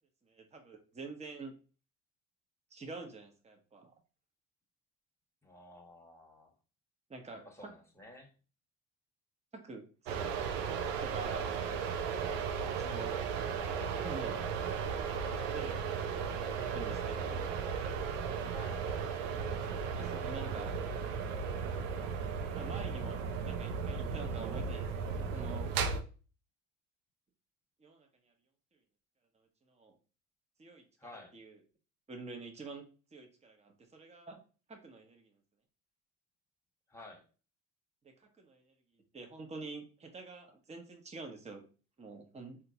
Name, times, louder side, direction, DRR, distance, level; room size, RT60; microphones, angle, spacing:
voice 1, 0.3-1.5 2.7-3.9 7.1-7.7 9.5-10.5 11.0-11.5 12.5-14.4 15.5-16.1 16.7-17.4 19.9-20.8 22.5-25.7 27.8-28.1 29.7-30.0 30.6-30.8 31.3-31.6 32.1-32.8 33.1-34.4 34.7-35.3 38.0-38.7 39.1-41.7 42.0-42.6, right 3 dB, 20° right, 3 dB, 0.8 m, -47 dB
voice 2, 5.4-6.5 7.4-8.3 18.5-18.8 31.0-31.3 36.9-37.3, left 2 dB, 5° left, 2 dB, 1.2 m, -52 dB
sound 1, 10.1-26.0, right 6 dB, 80° right, 0.5 m, -35 dB
3.7 x 2.3 x 2.8 m, 0.36 s
hypercardioid pair, 60°, 37 cm